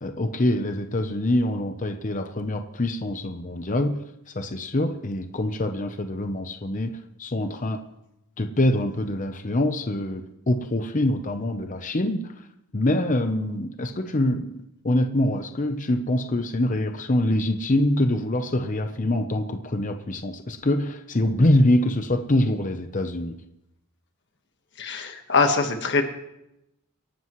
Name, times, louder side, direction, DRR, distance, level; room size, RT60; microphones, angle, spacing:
voice 1, 0.0-4.0 4.3-6.9 7.2-7.8 8.4-12.5 12.7-14.5 14.8-23.4, left 1 dB, 35° left, 7 dB, 0.8 m, -24 dB
voice 2, 24.8-26.0, left 4 dB, 50° left, 5 dB, 1.5 m, -22 dB
26.0 x 11.5 x 3.1 m, 0.86 s
head